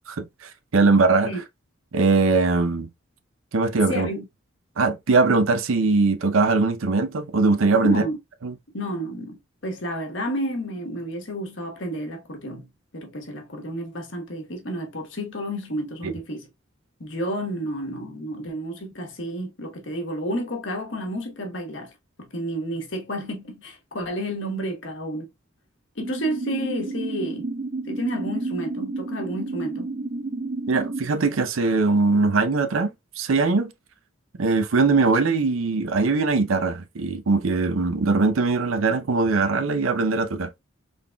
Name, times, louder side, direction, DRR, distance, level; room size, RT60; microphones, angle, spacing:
voice 1, 0.1-1.3 1.9-2.9 3.5-4.1 4.8-8.0 8.4-8.5 16.0-16.1 30.7-33.7 34.4-40.5, right 3 dB, 80° right, 0.6 m, -21 dB
voice 2, 3.9-4.3 7.8-8.2 8.7-12.7 12.9-16.5 17.0-21.9 22.2-25.3 26.0-27.5 27.9-29.9, equal, 60° left, 1.2 m, -31 dB
sound 1, 26.0-31.0, right 3 dB, 30° right, 0.4 m, -31 dB
3.9 x 3.5 x 2.2 m
head